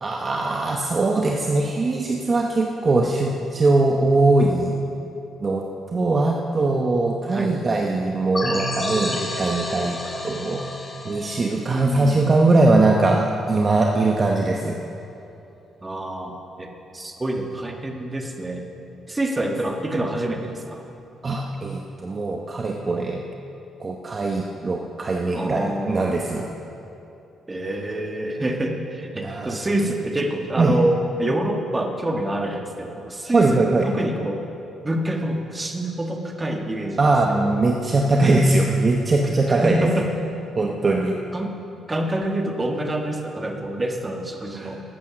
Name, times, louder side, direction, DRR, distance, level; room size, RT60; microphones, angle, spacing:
voice 1, 0.0-4.8 5.4-10.0 10.2-10.6 11.0-14.8 21.2-23.2 23.8-26.5 29.2-29.6 30.6-30.8 33.3-33.9 37.0-40.1 40.6-41.2 44.5-44.7, right 2 dB, 35° right, 1 dB, 0.9 m, -21 dB
sound 1, 8.3-12.8, left 1 dB, 25° left, 2.0 m, -30 dB
voice 2, 11.7-12.3 15.8-18.7 19.1-20.8 25.3-26.3 27.5-34.4 34.8-37.1 37.4-37.5 39.5-40.1 41.3-41.5 41.9-44.8, right 1 dB, 20° right, 3 dB, 1.4 m, -27 dB
13.5 x 8.6 x 6.0 m, 2.8 s
cardioid pair, 90°, 0 cm